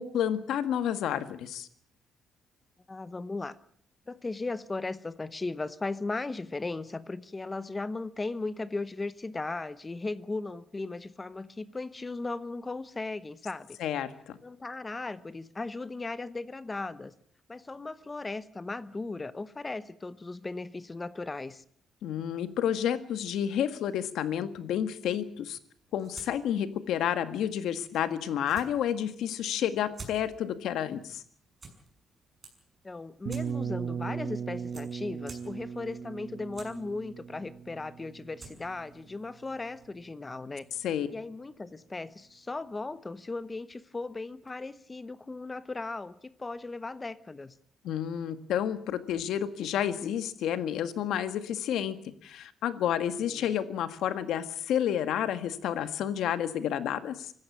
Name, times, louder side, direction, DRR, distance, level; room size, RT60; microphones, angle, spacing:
voice 1, 0.0-1.7 13.8-14.4 22.0-25.6 25.9-31.2 40.8-41.1 47.8-52.0 52.2-57.3, left 10 dB, 80° left, 1.8 m, -30 dB
voice 2, 2.9-3.6 4.1-13.8 14.4-17.1 17.5-21.6 32.8-40.7 41.1-47.5 53.2-53.5, left 3 dB, 20° left, 0.9 m, -37 dB
sound 1, 25.8-40.1, right 3 dB, 30° right, 6.5 m, -54 dB
sound 2, 33.3-39.0, right 7 dB, 55° right, 1.6 m, -37 dB
25.0 x 14.5 x 8.6 m
cardioid pair, 130°, 0 cm